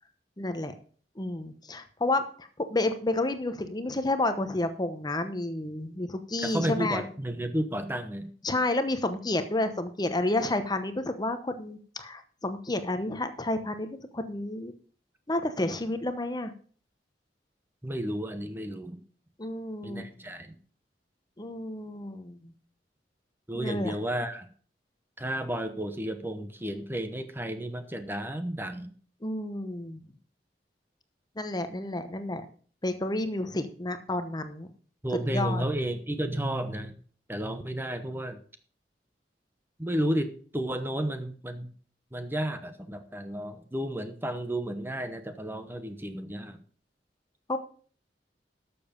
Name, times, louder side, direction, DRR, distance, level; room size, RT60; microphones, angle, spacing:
voice 1, 0.4-0.7 1.2-7.0 8.4-14.7 15.3-16.5 19.4-20.0 21.4-22.5 23.5-23.9 29.2-30.0 31.4-32.4 32.8-34.7 35.3-35.7 47.5-47.6, left 2 dB, 25° left, 9 dB, 0.9 m, -30 dB
voice 2, 6.4-8.3 17.8-19.0 19.8-20.5 23.5-24.5 25.2-28.9 35.0-36.9 37.3-38.4 39.8-41.7 42.1-46.6, right 1 dB, 15° right, 8 dB, 1.0 m, -32 dB
12.5 x 7.0 x 5.2 m, 0.43 s
head